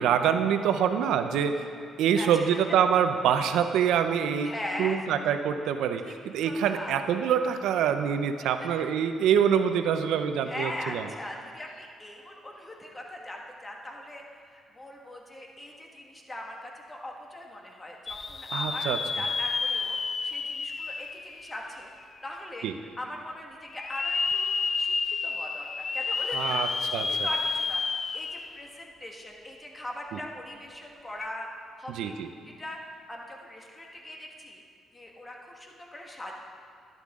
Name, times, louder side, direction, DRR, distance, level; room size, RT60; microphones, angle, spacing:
voice 1, 0.0-1.7 2.0-4.5 4.8-11.0 18.5-19.0 22.6-22.7 26.3-27.3 30.1-30.2 31.9-32.3, right 8 dB, 85° right, 8 dB, 0.6 m, -25 dB
voice 2, 2.1-2.8 4.4-5.0 6.0-6.2 6.4-7.0 10.5-21.9 22.2-22.7 23.0-24.5 24.7-31.5 31.8-32.2 32.6-32.8 33.1-34.6 34.9-36.3, left 1 dB, 20° left, 0 dB, 1.7 m, -40 dB
sound 1, 18.1-22.0 22.5-22.6 23.7-28.7 29.0-29.1 31.1-31.3, left 4 dB, 40° left, 0.4 m, -30 dB
11.5 x 11.0 x 3.7 m, 2.3 s
cardioid pair, 90°, 0 cm